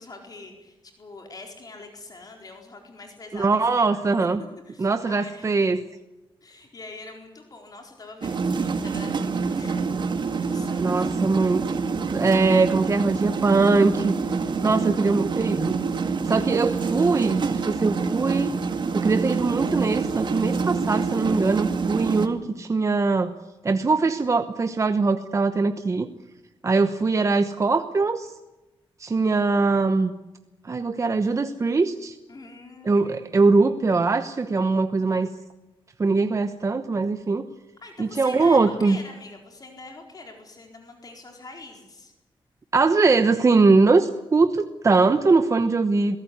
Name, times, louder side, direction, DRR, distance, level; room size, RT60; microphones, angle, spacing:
voice 1, 0.0-3.9 4.7-5.5 6.4-11.2 14.6-14.7 32.3-33.3 37.8-42.1, left 3 dB, 40° left, 3 dB, 4.4 m, -44 dB
voice 2, 3.3-4.4 4.8-5.8 10.8-11.8 12.1-14.1 14.6-15.8 16.2-18.6 18.9-23.3 23.6-26.1 26.6-28.3 29.0-30.1 30.6-32.2 32.8-35.3 36.0-37.5 38.0-39.0 42.7-46.2, right 3 dB, 30° right, 9 dB, 1.0 m, -21 dB
sound 1, 8.2-22.3, right 4 dB, 55° right, 2.0 m, -26 dB
23.0 x 16.5 x 9.6 m, 1.0 s
wide cardioid pair, 115°, 10 cm